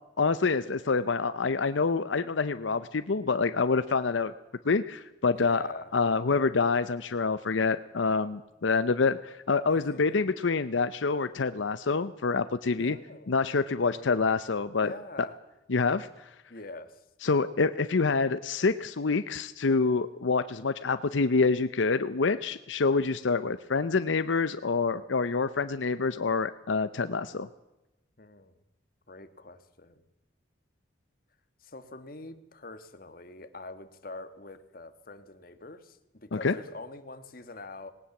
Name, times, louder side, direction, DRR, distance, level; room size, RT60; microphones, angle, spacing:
voice 1, 0.2-4.3 4.6-13.0 13.3-14.9 15.7-16.1 17.2-27.5 36.3-36.5, left 4 dB, 90° left, 12 dB, 0.7 m, -27 dB
voice 2, 5.3-5.9 9.7-10.2 12.8-14.2 14.8-15.4 16.5-17.0 28.2-28.6 29.1-30.0 31.6-37.9, left 2 dB, 50° left, 9 dB, 1.6 m, -45 dB
19.0 x 19.0 x 7.2 m, 0.96 s
head